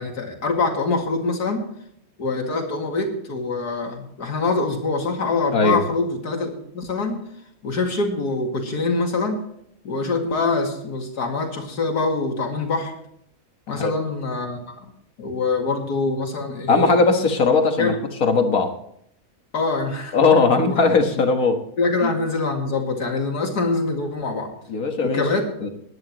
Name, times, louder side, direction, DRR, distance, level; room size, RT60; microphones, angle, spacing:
voice 1, 0.0-1.6 2.2-7.2 7.6-9.4 9.8-12.9 13.7-14.9 15.2-16.9 17.8-18.0 19.5-20.8 21.8-24.5 25.0-25.5, left 3 dB, 85° left, 2 dB, 2.7 m, -24 dB
voice 2, 5.5-5.8 13.8-13.9 16.7-18.0 18.2-18.7 20.1-21.6 22.0-22.1 24.7-25.2 25.6-25.7, left 4 dB, 65° left, 5 dB, 1.9 m, -18 dB
20.0 x 10.5 x 3.0 m, 0.72 s
omnidirectional pair, 1.6 m